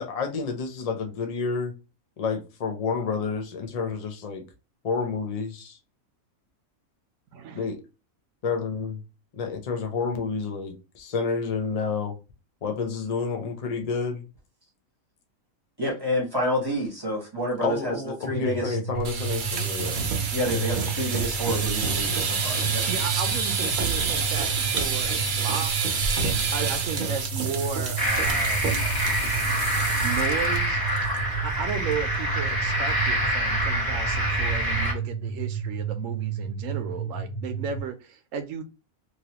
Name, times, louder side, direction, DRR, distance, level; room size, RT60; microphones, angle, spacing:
voice 1, 0.0-1.7 2.2-4.4 4.8-5.8 7.5-7.8 8.4-9.0 9.3-12.1 12.6-14.3 17.6-20.1, left 5 dB, 50° left, 0.4 m, -29 dB
voice 2, 7.3-7.7 22.3-25.7 26.5-28.7 30.0-30.8 31.4-38.6, right 6 dB, 70° right, 0.9 m, -34 dB
voice 3, 15.8-18.0 18.3-18.7 20.3-22.8, equal, 20° right, 0.9 m, -28 dB
sound 1, 18.2-37.8, right 6 dB, 85° left, 1.6 m, -32 dB
sound 2, 18.9-30.6 30.9-31.2 31.5-31.6 32.0-32.4, right 5 dB, 55° right, 0.5 m, -28 dB
sound 3, 28.0-34.9, equal, 20° left, 0.9 m, -26 dB
3.1 x 2.6 x 2.8 m
omnidirectional pair, 1.5 m